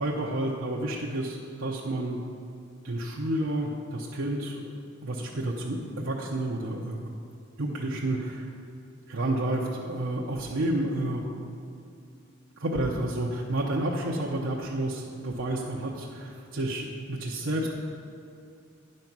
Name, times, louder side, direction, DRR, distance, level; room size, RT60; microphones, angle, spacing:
voice 1, 0.0-2.2 2.8-4.7 5.0-7.0 7.6-8.5 9.1-11.4 12.6-17.7, right 1 dB, 70° right, -3 dB, 0.8 m, -30 dB
10.0 x 5.4 x 6.0 m, 2.4 s
head